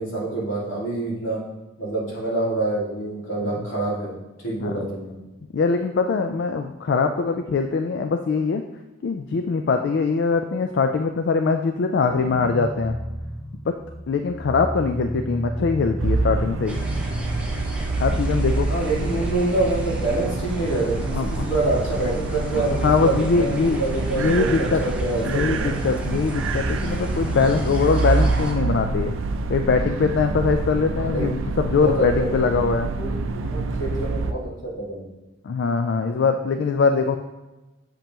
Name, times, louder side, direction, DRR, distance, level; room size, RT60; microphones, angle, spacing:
voice 1, 0.0-1.4 1.8-4.1 4.4-5.1 18.7-25.8 30.9-31.2 31.8-32.3 32.8-35.1, right 2 dB, 80° left, -6 dB, 2.2 m, -26 dB
voice 2, 5.5-8.6 9.0-13.0 13.7-13.8 14.1-16.8 18.0-18.7 21.1-21.5 22.5-23.8 24.2-24.8 25.2-29.1 29.5-32.9 35.4-37.2, left 4 dB, 60° left, 6 dB, 0.4 m, -22 dB
sound 1, 12.1-18.2, equal, 25° right, 1.4 m, -32 dB
sound 2, 16.0-34.3, right 3 dB, 85° right, 0.5 m, -26 dB
sound 3, 16.7-28.5, right 1 dB, 5° right, 0.8 m, -36 dB
7.3 x 5.3 x 2.9 m, 1.1 s
head